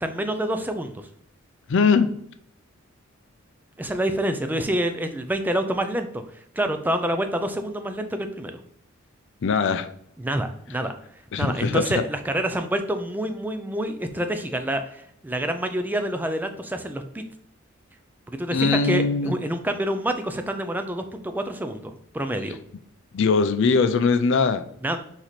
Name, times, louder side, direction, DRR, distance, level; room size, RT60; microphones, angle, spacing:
voice 1, 0.0-1.1 3.8-8.5 10.2-11.0 11.4-17.2 18.3-22.6 24.8-25.0, right 1 dB, 10° right, 7 dB, 0.3 m, -27 dB
voice 2, 1.7-2.1 9.4-9.9 11.3-11.9 18.5-19.4 23.1-24.6, left 4 dB, 60° left, 11 dB, 0.4 m, -21 dB
3.9 x 3.1 x 4.1 m, 0.69 s
head